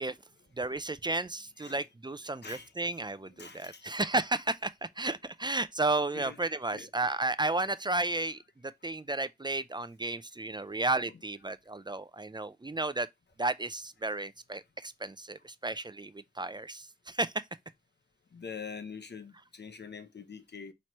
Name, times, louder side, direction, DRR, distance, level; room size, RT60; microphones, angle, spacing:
voice 1, 0.5-13.1 13.4-17.4, right 2 dB, 25° right, 0.4 m, -33 dB
voice 2, 3.3-3.9 6.1-6.4 6.7-6.9 11.1-11.2 18.3-20.7, left 6 dB, 80° left, 0.7 m, -44 dB
5.8 x 3.1 x 2.9 m
wide cardioid pair, 50°, 17 cm